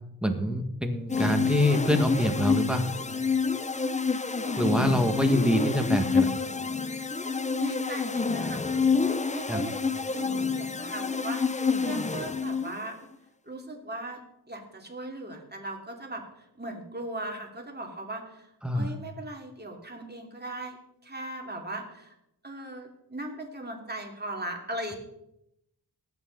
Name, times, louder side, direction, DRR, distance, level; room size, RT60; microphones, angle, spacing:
voice 1, 0.2-2.8 4.6-6.3 9.5-9.6 18.6-18.9, equal, ahead, 4 dB, 1.7 m, -25 dB
sound 1, 1.1-12.9, left 5 dB, 20° left, 0.5 m, -28 dB
voice 2, 4.2-4.9 7.6-12.9 13.5-14.2 14.5-20.8 21.0-22.2 22.4-24.9, right 1 dB, 25° right, 1 dB, 2.7 m, -39 dB
18.5 x 9.1 x 4.0 m, 0.82 s
wide cardioid pair, 95°, 39 cm